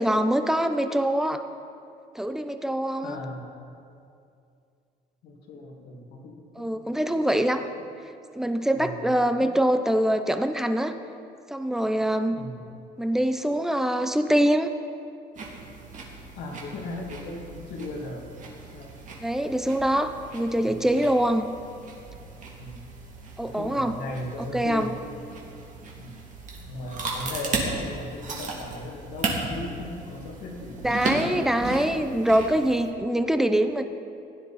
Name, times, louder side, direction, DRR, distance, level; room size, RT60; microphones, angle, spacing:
voice 1, 0.0-1.5 2.2-3.2 6.6-7.7 8.3-10.9 11.5-12.4 13.0-14.7 19.2-21.5 23.4-24.0 24.5-24.9 30.8-33.9, right 1 dB, 5° right, 8 dB, 0.7 m, -24 dB
voice 2, 3.0-3.5 5.2-7.2 7.6-7.7 8.7-9.5 12.3-12.6 16.4-18.2 18.7-18.9 20.6-20.8 22.6-23.1 23.4-25.0 26.0-26.2 26.6-31.0, left 1 dB, 75° left, -1 dB, 2.3 m, -37 dB
sound 1, 15.4-32.9, right 3 dB, 50° right, 2.5 m, -36 dB
16.0 x 10.5 x 4.2 m, 2.5 s
cardioid pair, 110°, 17 cm